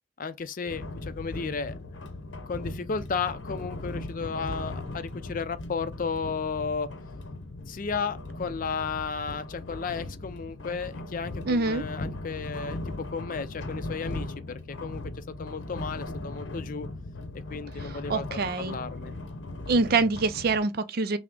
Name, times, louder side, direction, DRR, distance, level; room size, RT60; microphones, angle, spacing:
voice 1, 0.2-1.7 2.3-6.9 7.7-15.0 15.4-16.9 17.5-18.4 18.6-19.1, left 5 dB, 45° left, 0.5 m, -33 dB
sound 1, 0.7-20.6, left 2 dB, 80° left, 0.7 m, -38 dB
voice 2, 11.5-11.8 17.8-18.8 19.7-21.2, right 3 dB, 55° right, 0.5 m, -25 dB
5.8 x 2.1 x 3.7 m
head